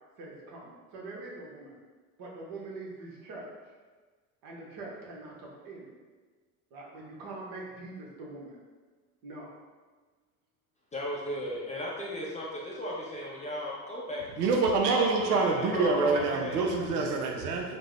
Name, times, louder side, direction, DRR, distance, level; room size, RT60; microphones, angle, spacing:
voice 1, 0.2-1.7 2.2-3.5 4.4-5.9 6.7-8.6 9.2-9.5, right 2 dB, 45° right, -3 dB, 1.0 m, -43 dB
voice 2, 10.9-14.4 14.9-16.7, left 1 dB, 15° left, -4 dB, 0.5 m, -36 dB
voice 3, 14.4-17.8, right 4 dB, 75° right, 2 dB, 0.5 m, -26 dB
3.3 x 2.1 x 3.4 m, 1.4 s
figure-of-eight pair, 65°, 47 cm